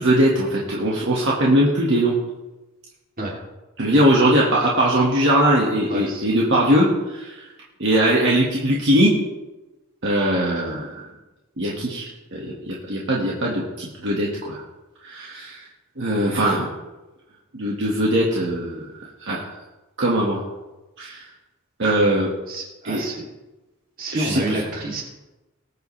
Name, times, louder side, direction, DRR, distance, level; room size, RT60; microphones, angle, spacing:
voice 1, 0.0-2.1 3.8-7.5 7.8-9.1 10.0-11.0 11.6-14.6 15.0-15.6 16.0-16.7 17.5-18.9 19.2-19.5 20.0-20.4 21.0-21.3 21.8-22.3 22.8-23.0 24.1-24.4, right 1 dB, 60° right, -4 dB, 1.8 m, -20 dB
voice 2, 5.9-6.3 22.5-23.2 24.0-25.0, right 1 dB, 45° right, -2 dB, 3.1 m, -28 dB
20.0 x 8.3 x 3.3 m, 1.1 s
head